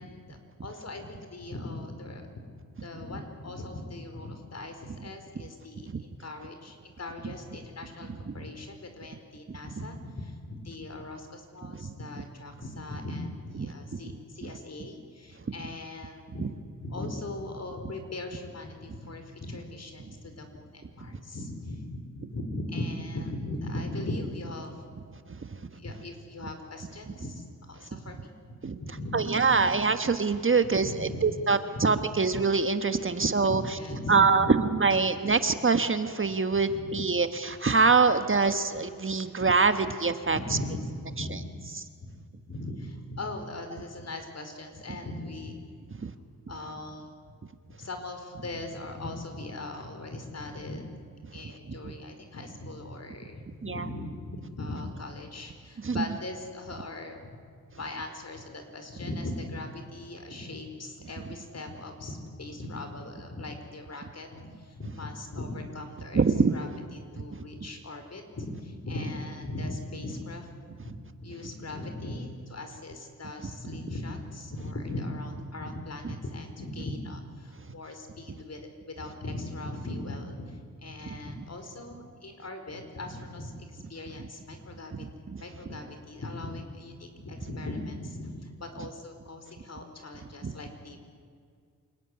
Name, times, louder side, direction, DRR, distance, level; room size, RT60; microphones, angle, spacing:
voice 1, 0.0-2.2 2.7-16.5 16.8-24.7 25.7-29.7 30.8-31.3 31.7-31.8 33.2-34.5 36.7-36.9 40.3-41.7 42.0-42.2 42.5-45.6 46.5-47.1 47.8-50.8 51.3-57.2 57.7-66.2 66.5-70.5 70.8-70.9 71.2-78.6 78.9-85.0 85.4-91.0, left 2 dB, 45° left, 6 dB, 4.8 m, -39 dB
voice 2, 29.1-33.6 34.1-34.5 34.7-40.4 46.0-46.1 51.8-51.9 53.6-53.8 55.8-56.0 66.1-66.5 81.0-81.2 85.0-85.4 90.4-90.5, right 4 dB, 35° right, 9 dB, 1.4 m, -24 dB
28.0 x 20.0 x 9.9 m, 2.2 s
cardioid pair, 90°, 35 cm